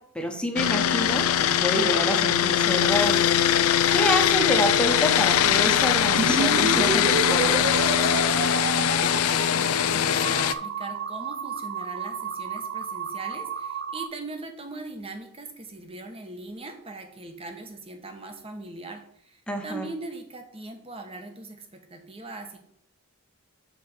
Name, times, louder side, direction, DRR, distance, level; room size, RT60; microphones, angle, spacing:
voice 1, 0.1-3.2 3.6-7.8 19.5-19.9, equal, 5° left, 3 dB, 1.0 m, -28 dB
sound 1, 0.6-10.5, left 9 dB, 85° left, 0.4 m, -22 dB
sound 2, 6.2-14.1, right 5 dB, 45° right, 0.5 m, -30 dB
voice 2, 8.8-22.6, right 2 dB, 25° right, 5 dB, 1.1 m, -40 dB
6.6 x 4.2 x 6.6 m, 0.68 s
head